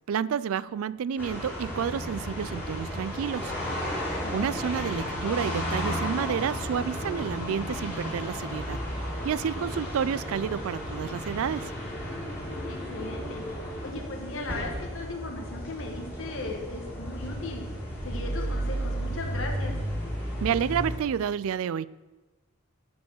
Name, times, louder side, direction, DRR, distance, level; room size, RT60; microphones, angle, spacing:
voice 1, 0.1-3.5 4.3-8.8 9.2-11.7 20.4-21.9, right 8 dB, 70° right, 0.3 m, -30 dB
sound 1, 1.2-21.0, equal, 10° left, 2.6 m, -33 dB
voice 2, 4.2-4.6 12.5-13.4 13.8-17.6 18.0-19.8, left 2 dB, 60° left, 1.4 m, -37 dB
13.5 x 4.7 x 6.7 m
head